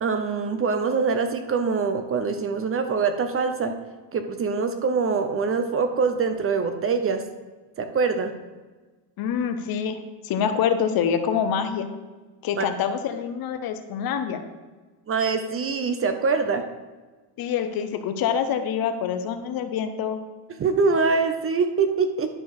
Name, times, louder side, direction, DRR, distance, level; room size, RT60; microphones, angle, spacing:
voice 1, 0.0-3.7 4.1-7.2 7.8-8.3 12.6-12.7 15.1-16.6 20.6-22.3, right 4 dB, 30° right, 8 dB, 0.6 m, -24 dB
voice 2, 9.2-10.0 10.2-11.9 12.4-14.4 17.4-20.2, left 7 dB, 50° left, 8 dB, 0.9 m, -26 dB
11.0 x 4.6 x 4.7 m, 1.3 s
cardioid pair, 125°, 45 cm